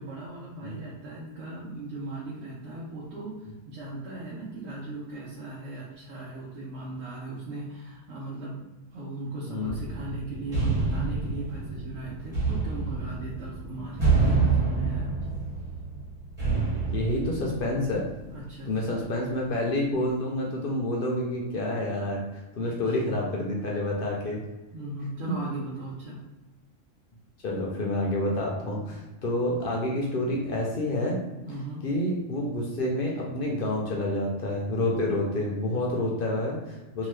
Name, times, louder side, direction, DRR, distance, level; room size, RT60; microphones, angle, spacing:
voice 1, 0.0-15.4 18.3-19.0 22.6-23.1 24.7-26.2 31.4-31.8 37.0-37.1, right 2 dB, 85° right, -6 dB, 1.1 m, -38 dB
voice 2, 9.4-9.8 13.9-14.0 16.9-18.0 18.7-24.4 27.4-31.2 31.8-37.1, left 1 dB, 60° left, -2 dB, 0.6 m, -28 dB
sound 1, 9.6-18.3, right 4 dB, 25° right, 1.3 m, -28 dB
2.8 x 2.2 x 3.2 m, 1.1 s
omnidirectional pair, 1.3 m